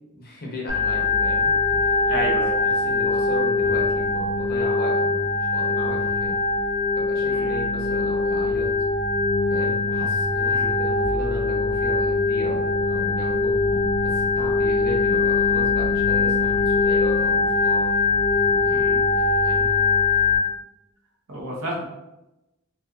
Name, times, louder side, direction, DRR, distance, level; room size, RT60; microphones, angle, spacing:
voice 1, 0.2-2.1 2.6-6.3 7.0-8.7 9.5-13.6 14.0-17.9 18.6-19.7, left 1 dB, 45° left, -2 dB, 0.6 m, -36 dB
Organ, 0.7-20.4, left 4 dB, 10° right, 0.8 m, -22 dB
voice 2, 2.1-2.5 7.3-7.6 10.5-10.7 18.7-19.0 21.3-21.8, equal, 70° right, -3 dB, 0.8 m, -30 dB
2.5 x 2.5 x 2.3 m, 0.95 s
head